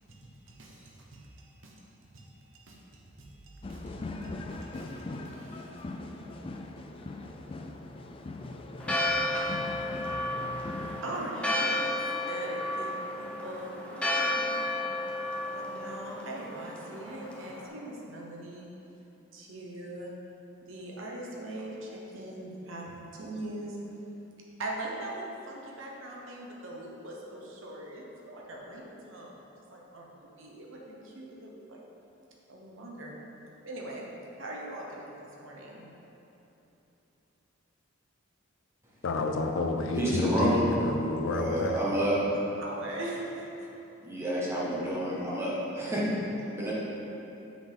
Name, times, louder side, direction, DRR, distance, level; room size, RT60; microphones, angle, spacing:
voice 1, 0.1-1.9 2.1-5.9 10.5-11.9 12.2-14.9 15.5-18.7 19.3-20.1 20.6-23.8 24.6-29.4 29.7-31.8 32.5-33.2 33.6-34.1 34.4-35.9 42.3-43.5, right 1 dB, 75° right, -2 dB, 1.0 m, -41 dB
sound 1, 3.6-11.0, left 2 dB, 25° left, 0.3 m, -40 dB
Church bell, 8.8-17.7, left 1 dB, 5° left, 0.7 m, -32 dB
voice 2, 39.0-41.8, left 2 dB, 80° left, 5 dB, 0.5 m, -30 dB
voice 3, 40.0-40.7 41.3-42.2 44.0-46.7, equal, 15° right, -7 dB, 1.3 m, -29 dB
7.2 x 6.1 x 3.5 m, 3.0 s
head